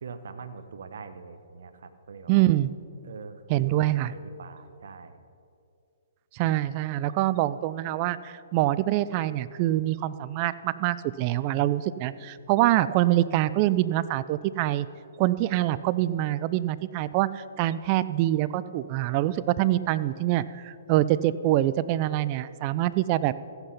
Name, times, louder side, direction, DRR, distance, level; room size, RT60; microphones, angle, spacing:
voice 1, 0.0-2.4 3.0-5.2, right 5 dB, 70° right, 10 dB, 1.0 m, -43 dB
voice 2, 2.3-2.7 3.5-4.1 6.3-14.9 15.2-23.3, right 14 dB, 35° right, 16 dB, 0.4 m, -25 dB
15.0 x 8.1 x 5.6 m, 2.4 s
hypercardioid pair, 135°, 0 cm